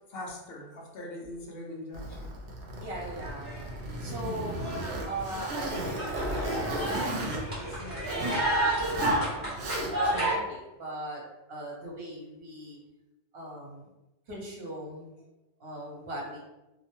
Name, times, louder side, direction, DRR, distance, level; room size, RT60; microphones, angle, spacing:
voice 1, 0.1-2.3, left 1 dB, 70° left, -2 dB, 0.8 m, -41 dB
Zipper (clothing), 1.9-8.4 8.8-9.2 9.5-10.2, right 1 dB, 85° right, 0.9 m, -35 dB
voice 2, 2.8-4.6 5.0-11.2 11.5-12.8 13.3-13.9 14.3-15.1 15.6-16.5, right 1 dB, 65° right, -3 dB, 1.0 m, -40 dB
sound 1, 3.2-3.9 4.2-10.3, right 1 dB, 30° left, 1.2 m, -31 dB
2.6 x 2.1 x 2.9 m, 1.0 s
omnidirectional pair, 1.1 m